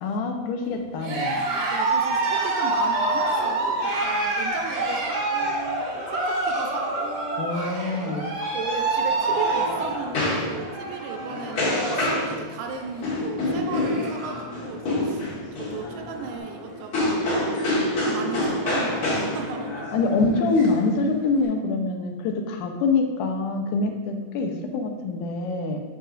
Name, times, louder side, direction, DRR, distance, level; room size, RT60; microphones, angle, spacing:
voice 1, 0.0-1.4 7.4-8.4 19.9-25.8, left 3 dB, 90° left, 3 dB, 2.2 m, -25 dB
Cheering, 1.0-12.2 12.5-13.0 13.4-13.5 13.7-14.5, right 2 dB, 55° right, 1.4 m, -27 dB
voice 2, 1.3-7.5 8.5-17.2 17.6-19.8, right 5 dB, 80° right, 4 dB, 1.9 m, -36 dB
sound 1, 9.0-21.4, left 1 dB, 45° left, 2.6 m, -28 dB
8.4 x 5.5 x 2.5 m, 1.3 s
omnidirectional pair, 3.6 m